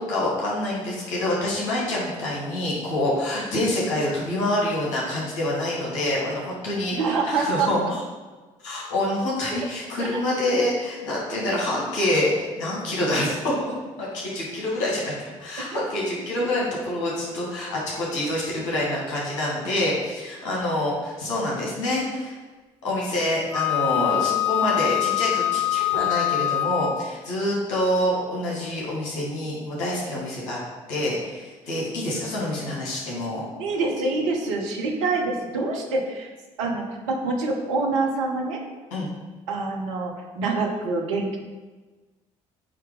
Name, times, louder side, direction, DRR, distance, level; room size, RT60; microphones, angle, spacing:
voice 1, 0.0-7.0 7.2-7.8 8.6-13.5 14.0-22.3 22.8-30.6 30.9-33.4 38.9-39.1, left 1 dB, 75° left, -5 dB, 2.3 m, -26 dB
voice 2, 6.9-7.7 10.0-10.1 15.7-15.9 33.6-36.3 36.6-38.6 39.5-41.4, right 3 dB, 80° right, 1 dB, 1.0 m, -26 dB
Wind instrument woodwind instrument, 23.5-27.1, left 14 dB, 10° left, 0.4 m, -24 dB
8.5 x 3.0 x 5.2 m, 1.3 s
hypercardioid pair, 50°, 16 cm